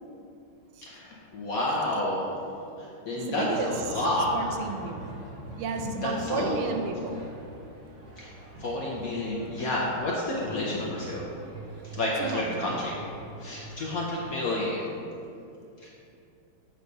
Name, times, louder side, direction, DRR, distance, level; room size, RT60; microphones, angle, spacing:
voice 1, 0.8-2.3 2.8-4.5 6.0-6.6 8.2-8.3 8.6-11.3 11.9-12.9 13.4-14.9 15.8-15.9, left 1 dB, 60° left, -4 dB, 0.9 m, -30 dB
voice 2, 3.1-4.0 4.3-5.1 5.6-7.2 12.2-12.8, right 4 dB, 90° right, 5 dB, 1.5 m, -32 dB
sound 1, 3.5-14.1, right 2 dB, 45° right, 1.0 m, -43 dB
7.9 x 3.2 x 5.3 m, 2.6 s
omnidirectional pair, 2.3 m